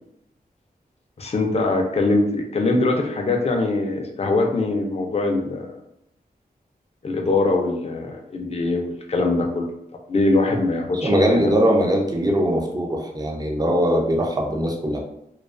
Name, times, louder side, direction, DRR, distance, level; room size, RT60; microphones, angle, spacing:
voice 1, 1.2-5.7 7.0-9.7 10.1-11.6, left 2 dB, 40° left, 2 dB, 0.4 m, -22 dB
voice 2, 11.0-15.0, equal, 25° right, 0 dB, 0.5 m, -21 dB
2.3 x 2.3 x 2.4 m, 0.78 s
wide cardioid pair, 95°, 17 cm